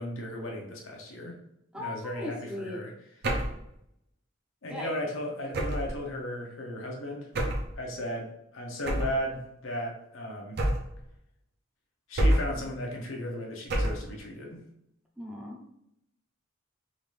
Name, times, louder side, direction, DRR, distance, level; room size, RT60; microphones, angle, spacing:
voice 1, 0.0-1.4 1.7-3.3 4.6-7.3 7.8-10.6 12.1-14.6, equal, 90° left, 0 dB, 0.9 m, -36 dB
voice 2, 1.7-2.8 4.7-4.9 15.2-15.8, left 1 dB, 5° right, -2 dB, 0.5 m, -38 dB
sound 1, 3.2-3.6 5.5-6.0 7.3-7.7 8.9-9.2 10.6-11.0 12.2-12.6 13.7-14.1, right 1 dB, 55° right, 0.7 m, -27 dB
3.8 x 2.6 x 3.2 m, 0.77 s
head